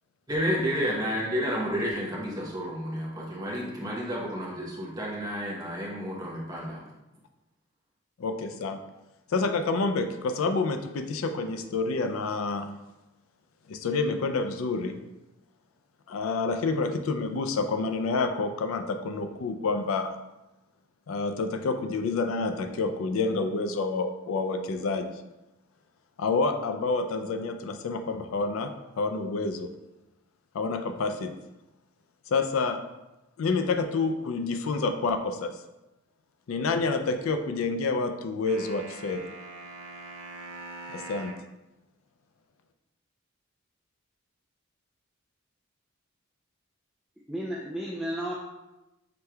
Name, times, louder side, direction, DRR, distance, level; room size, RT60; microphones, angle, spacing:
voice 1, 0.3-6.8, equal, 20° right, -4 dB, 0.8 m, -31 dB
voice 2, 8.2-8.8 9.3-12.7 13.7-15.0 16.1-20.2 21.1-25.1 26.2-29.7 30.5-31.3 32.3-32.8 33.4-35.6 36.5-39.2 40.9-41.3, left 3 dB, 75° left, 7 dB, 0.4 m, -28 dB
sound 1, 38.5-41.5, right 2 dB, 90° right, 0.6 m, -43 dB
voice 3, 47.3-48.3, equal, ahead, -6 dB, 0.4 m, -32 dB
5.9 x 3.2 x 2.3 m, 0.98 s
head